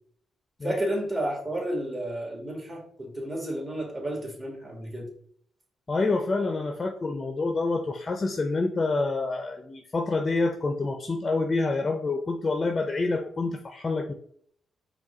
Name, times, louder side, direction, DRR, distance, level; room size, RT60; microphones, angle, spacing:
voice 1, 0.6-5.1, right 1 dB, 25° right, 0 dB, 1.5 m, -31 dB
voice 2, 5.9-14.1, left 3 dB, 35° left, 6 dB, 0.5 m, -27 dB
4.6 x 2.3 x 3.7 m, 0.63 s
supercardioid pair, 60°, 0 cm